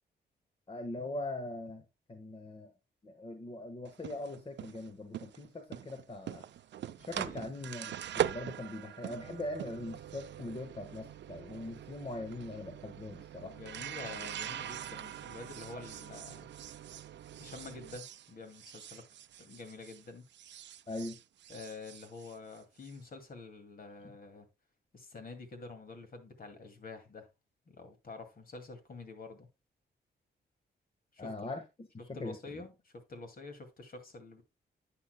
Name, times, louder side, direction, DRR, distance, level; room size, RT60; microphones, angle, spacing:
voice 1, 0.7-2.7 3.0-6.4 7.0-13.5 20.9-21.2 24.0-24.1 31.2-32.6, left 2 dB, 30° left, 1.3 m, -41 dB
sound 1, 3.9-20.1 20.3-22.9, right 10 dB, 75° right, 0.5 m, -42 dB
voice 2, 7.0-7.4 13.4-16.5 17.4-19.0 19.4-20.2 21.5-24.5 24.9-27.3 27.7-29.5 31.1-31.5 32.1-34.4, left 3 dB, 50° left, 2.3 m, -48 dB
11.0 x 8.9 x 2.2 m
cardioid pair, 100°, 19 cm